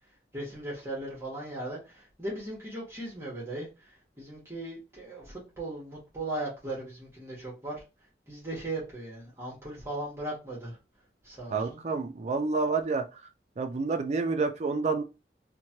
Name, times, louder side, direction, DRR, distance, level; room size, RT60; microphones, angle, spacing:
voice 1, 0.3-3.7 4.2-7.8 8.3-10.8 11.2-11.8, right 1 dB, 15° right, 1.0 m, -38 dB
voice 2, 11.5-13.2 13.6-15.0, right 4 dB, 40° right, 0.4 m, -29 dB
3.0 x 2.1 x 2.8 m
head